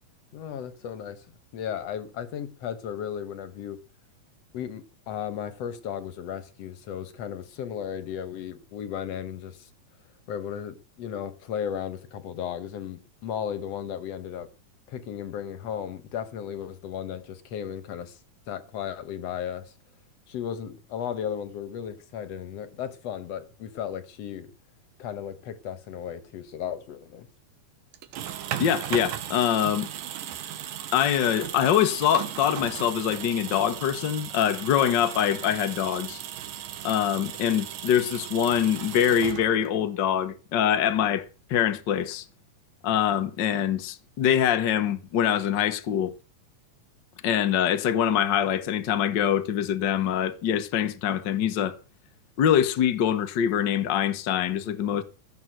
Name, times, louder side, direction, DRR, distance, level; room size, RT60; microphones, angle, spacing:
voice 1, 0.3-3.8 4.5-9.7 10.3-14.5 14.9-18.2 18.5-19.7 20.3-24.5 25.0-27.3, left 9 dB, 60° left, 2.0 m, -35 dB
sound 1, 27.9-39.9, right 11 dB, 85° right, 2.9 m, -36 dB
voice 2, 28.6-29.9 30.9-36.2 36.8-42.2 42.8-46.1 47.2-51.8 52.4-55.0, left 9 dB, 75° left, 1.0 m, -24 dB
16.0 x 6.9 x 7.8 m
omnidirectional pair, 3.8 m